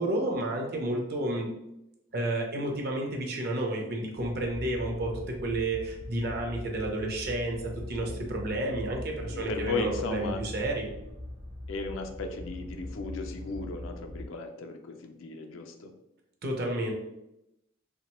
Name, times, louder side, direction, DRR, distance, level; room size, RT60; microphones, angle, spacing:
voice 1, 0.0-1.5 2.1-10.9 16.4-16.9, right 1 dB, 50° right, 1 dB, 0.5 m, -31 dB
sound 1, 4.1-14.3, left 1 dB, 70° right, 0.9 m, -41 dB
voice 2, 9.2-10.4 11.7-15.9, left 3 dB, 70° left, 5 dB, 0.4 m, -36 dB
2.9 x 2.1 x 2.9 m, 0.87 s
head